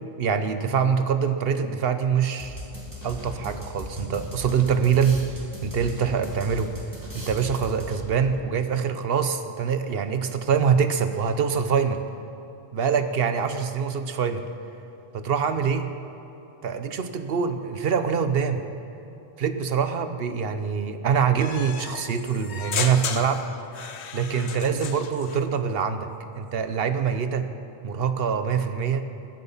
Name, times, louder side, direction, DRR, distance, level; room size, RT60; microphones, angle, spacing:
voice 1, 0.0-2.6 3.0-5.2 5.6-6.7 7.1-12.0 12.7-14.4 15.1-15.9 16.6-18.6 19.4-23.4 24.1-26.1 26.3-27.5 27.8-29.1, right 6 dB, 65° right, 9 dB, 1.0 m, -24 dB
sound 1, 2.4-8.3, left 1 dB, 20° right, 3.0 m, -37 dB
sound 2, 21.4-25.4, left 7 dB, 85° left, 1.0 m, -34 dB
21.5 x 7.8 x 5.7 m, 2.9 s
omnidirectional pair, 1.1 m